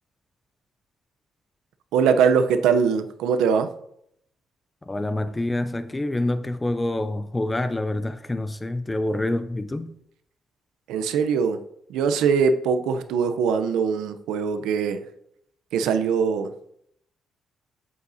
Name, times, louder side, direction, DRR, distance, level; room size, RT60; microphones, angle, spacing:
voice 1, 1.9-3.7 10.9-11.6 11.9-15.0 15.7-16.5, right 6 dB, 90° right, 0.6 m, -22 dB
voice 2, 4.9-9.9, left 1 dB, 15° left, 0.5 m, -27 dB
8.0 x 8.0 x 2.7 m
cardioid pair, 90°, 0 cm